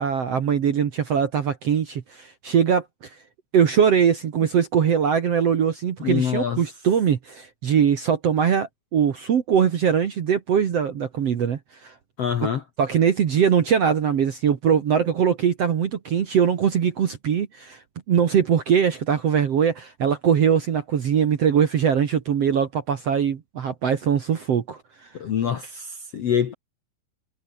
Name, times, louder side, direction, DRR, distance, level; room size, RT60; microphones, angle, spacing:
voice 1, 0.0-2.8 3.5-11.9 12.8-17.8 18.1-24.8, right 7 dB, 55° right, 1.9 m, -21 dB
voice 2, 6.0-6.6 12.2-12.6 25.1-26.5, left 8 dB, 60° left, 1.7 m, -25 dB
omnidirectional pair, 4.8 m